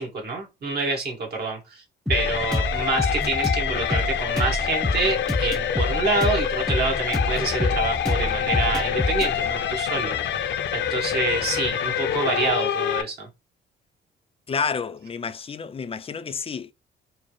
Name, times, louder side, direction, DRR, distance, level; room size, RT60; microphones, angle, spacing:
voice 1, 0.0-1.8 2.1-10.2 10.4-13.3, right 3 dB, 55° right, 1.8 m, -27 dB
sound 1, 2.1-13.0, left 9 dB, 70° left, 0.6 m, -26 dB
sound 2, 2.1-11.7, left 1 dB, 5° left, 0.8 m, -28 dB
voice 2, 14.5-16.7, left 5 dB, 30° left, 0.4 m, -29 dB
4.8 x 2.0 x 3.1 m
cardioid pair, 90°, 20 cm